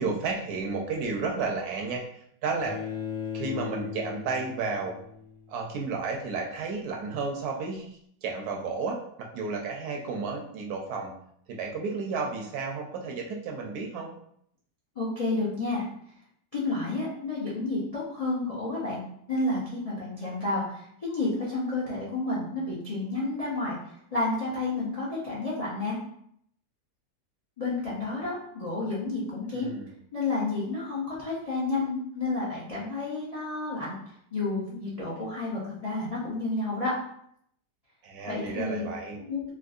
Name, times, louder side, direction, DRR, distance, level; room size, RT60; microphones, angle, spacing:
voice 1, 0.0-2.8 3.3-4.9 5.5-11.1 11.5-14.1 29.5-29.9 38.0-39.2, right 4 dB, 70° right, 1 dB, 1.0 m, -32 dB
Bowed string instrument, 2.6-5.7, left 8 dB, 55° left, 0.7 m, -37 dB
voice 2, 15.0-15.8 16.5-19.0 19.3-23.8 24.1-26.0 27.6-29.7 30.1-34.0 34.3-36.9 38.3-38.8 39.2-39.4, left 2 dB, 75° left, -7 dB, 0.3 m, -30 dB
3.5 x 2.6 x 2.4 m, 0.69 s
omnidirectional pair, 1.9 m